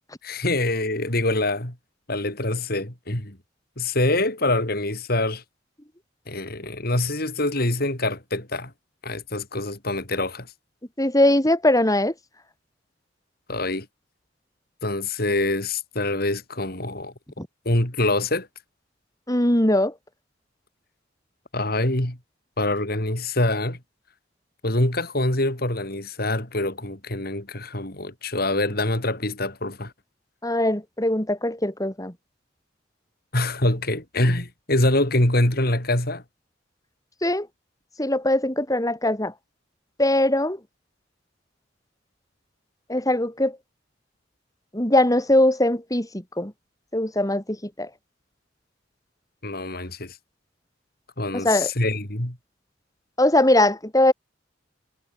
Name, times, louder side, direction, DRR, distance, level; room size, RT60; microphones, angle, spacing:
voice 1, 0.2-1.7 2.1-3.4 3.8-5.4 6.3-8.7 9.0-10.5 13.5-13.9 14.8-17.1 17.6-18.5 21.5-22.2 22.6-23.8 24.6-29.9 33.3-36.2 49.4-50.2 51.2-52.4, left 2 dB, 55° left, 4.5 m, -25 dB
voice 2, 11.0-12.1 17.4-17.5 19.3-19.9 30.4-32.1 37.2-37.5 38.0-39.3 40.0-40.6 42.9-43.6 44.7-46.5 46.9-47.9 51.3-51.7 53.2-54.1, left 1 dB, 20° left, 3.9 m, -21 dB
head